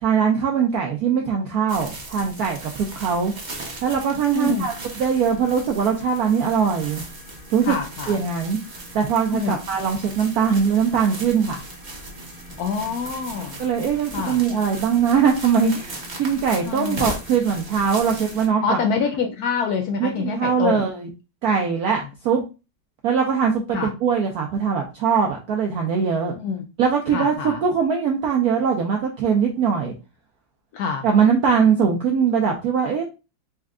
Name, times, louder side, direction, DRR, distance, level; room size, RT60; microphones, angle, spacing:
voice 1, 0.0-3.3 3.8-7.0 7.5-7.8 8.1-11.6 13.6-18.8 20.0-21.1 21.4-22.4 23.0-26.4 26.8-29.9 31.0-33.0, right 6 dB, 75° right, 2 dB, 0.8 m, -21 dB
sound 1, 1.7-18.5, right 2 dB, 45° right, 0.5 m, -38 dB
voice 2, 4.3-4.7 7.7-8.2 9.3-9.6 12.6-13.6 14.1-14.4 16.7-17.1 18.6-20.8 23.7-23.9 26.4-26.6 27.1-27.6 30.7-31.1, left 5 dB, 90° left, 4 dB, 0.8 m, -25 dB
sound 2, 4.6-18.8, left 1 dB, 70° left, 2.2 m, -46 dB
4.3 x 2.3 x 3.6 m, 0.30 s
omnidirectional pair, 2.2 m